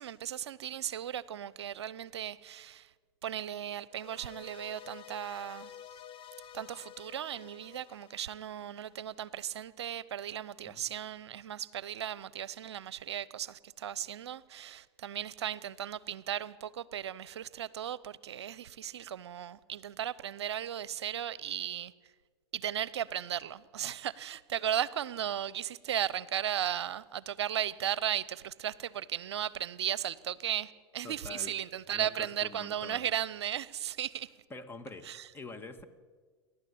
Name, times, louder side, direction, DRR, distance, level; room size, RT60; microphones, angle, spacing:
voice 1, 0.0-2.9 3.2-5.7 6.5-21.9 22.5-34.3 35.1-35.2, right 10 dB, 75° right, 0.7 m, -36 dB
sound 1, 3.9-9.2, left 9 dB, 35° left, 1.1 m, -51 dB
voice 2, 31.0-31.5 31.9-33.1 34.5-35.1 35.3-35.9, left 3 dB, 15° left, 2.0 m, -45 dB
29.0 x 12.0 x 8.6 m
hypercardioid pair, 100°, 14 cm